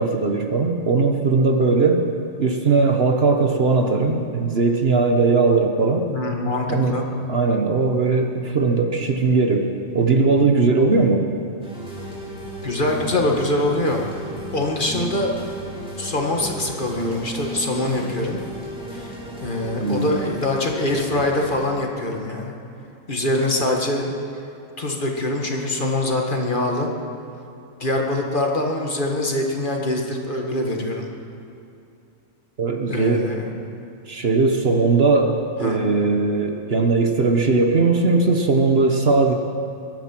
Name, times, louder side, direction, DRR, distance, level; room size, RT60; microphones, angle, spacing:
voice 1, 0.0-2.0 2.4-6.0 6.7-7.0 7.3-11.3 19.8-20.1 32.6-33.3 34.1-39.3, right 3 dB, 50° right, 4 dB, 1.2 m, -19 dB
voice 2, 6.1-7.0 12.6-14.0 14.5-15.3 16.0-18.4 18.9-19.1 19.4-22.6 23.1-24.1 24.8-26.9 27.8-31.1 32.9-33.5 35.6-35.8, left 1 dB, 40° left, 1 dB, 1.8 m, -24 dB
sound 1, 11.6-21.7, right 1 dB, 5° right, 3.5 m, -35 dB
22.5 x 10.5 x 6.0 m, 2.7 s
omnidirectional pair, 1.4 m